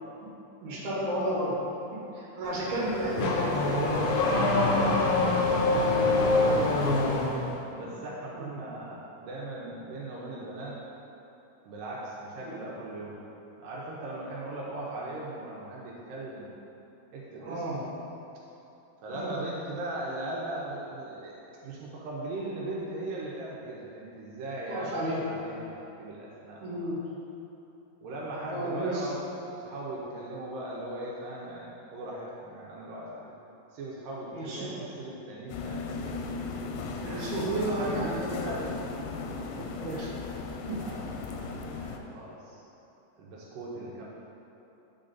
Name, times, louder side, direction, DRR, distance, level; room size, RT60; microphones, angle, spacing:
voice 1, 0.6-1.5 2.1-3.5 7.4-7.5 7.8-7.9 8.3-8.5 12.4-12.5 17.4-17.8 19.1-19.4 24.7-25.2 26.6-27.0 28.5-29.1 34.3-34.7 37.0-38.7 39.5-40.1 40.7-40.8, right 1 dB, 45° right, -7 dB, 1.6 m, -32 dB
Car / Accelerating revving vroom, 2.5-7.5, left 2 dB, 75° left, 2.3 m, -25 dB
voice 2, 4.3-6.8 7.2-10.8 11.7-13.2 13.6-16.5 17.1-18.0 19.0-21.4 21.6-26.9 28.0-29.2 29.5-33.3 33.7-36.2 37.1-37.5 37.7-38.2 38.5-38.6 40.7-42.6 43.2-44.1, right 2 dB, 75° right, -5 dB, 2.3 m, -39 dB
sound 1, 35.5-42.0, left 4 dB, 90° left, 2.4 m, -36 dB
8.8 x 4.3 x 3.9 m, 2.9 s
omnidirectional pair, 4.2 m